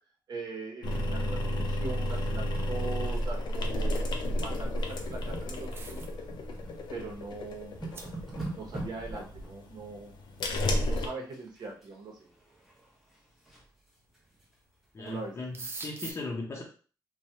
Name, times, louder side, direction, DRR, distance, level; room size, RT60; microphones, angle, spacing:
voice 1, 0.3-6.0 6.9-7.8 8.5-10.1 10.6-12.2 15.0-15.4, right 3 dB, 60° right, 0 dB, 0.9 m, -41 dB
sound 1, 0.8-11.1, left 1 dB, 70° left, 0.5 m, -33 dB
sound 2, 0.9-3.3 3.5-3.7 4.2-4.6 4.9-6.8 7.2-7.3 7.6-9.5 11.3-11.9 12.2-13.7 14.1-14.2 14.5-14.6 15.1-15.2, right 2 dB, 5° right, 0.9 m, -43 dB
sound 3, 4.4-6.2 6.6-6.8 7.4-7.5 7.9-8.1 10.4-10.5 11.5-11.6 12.3-12.8 14.0-14.5 14.7-14.9 15.2-16.1, right 3 dB, 30° right, 0.5 m, -45 dB
voice 2, 14.9-16.6, left 3 dB, 35° left, -2 dB, 0.7 m, -38 dB
3.2 x 2.2 x 2.7 m, 0.40 s
cardioid pair, 115°, 8 cm